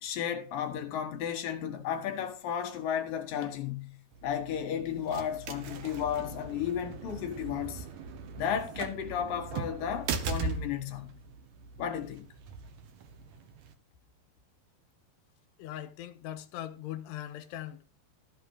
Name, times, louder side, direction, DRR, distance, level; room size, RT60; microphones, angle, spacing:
voice 1, 0.0-4.0 4.2-7.8 8.4-11.1 11.8-12.3, left 8 dB, 60° left, 2.9 m, -33 dB
sound 1, 4.1-13.7, right 4 dB, 80° right, 1.5 m, -40 dB
voice 2, 15.6-18.0, left 12 dB, 80° left, 3.0 m, -40 dB
14.0 x 6.0 x 4.8 m
omnidirectional pair, 4.9 m